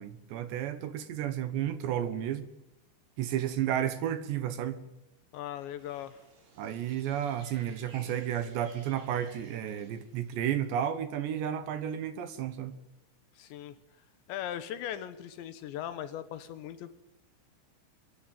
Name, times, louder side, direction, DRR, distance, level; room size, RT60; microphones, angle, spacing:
voice 1, 0.0-2.4 3.2-4.8 6.6-12.7, right 10 dB, 70° right, 3.1 m, -32 dB
voice 2, 5.3-6.2 13.4-13.8 14.3-16.9, left 11 dB, 70° left, 3.0 m, -39 dB
sound 1, 5.8-10.5, right 3 dB, 50° right, 7.6 m, -56 dB
23.5 x 22.5 x 9.1 m
omnidirectional pair, 5.9 m